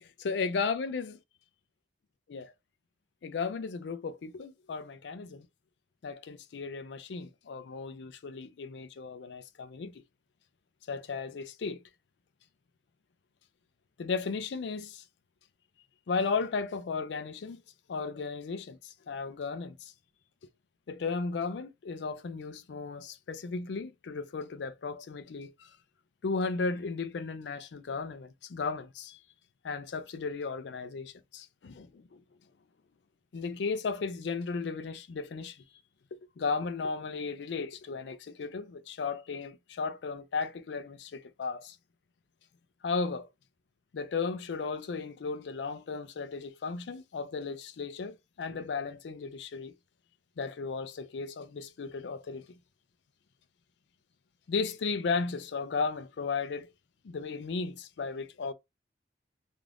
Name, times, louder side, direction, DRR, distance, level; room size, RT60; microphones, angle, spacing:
voice 1, 0.0-1.2 2.3-2.5 3.2-5.5 6.0-10.0 10.9-11.8 14.0-15.0 16.1-17.6 17.9-19.9 20.9-25.7 26.2-29.2 29.6-32.2 33.3-35.6 36.4-41.8 42.8-43.3 43.9-49.7 50.4-52.5 54.5-56.7 57.0-58.5, left 4 dB, 75° left, 0.4 m, -35 dB
2.5 x 2.4 x 3.3 m
head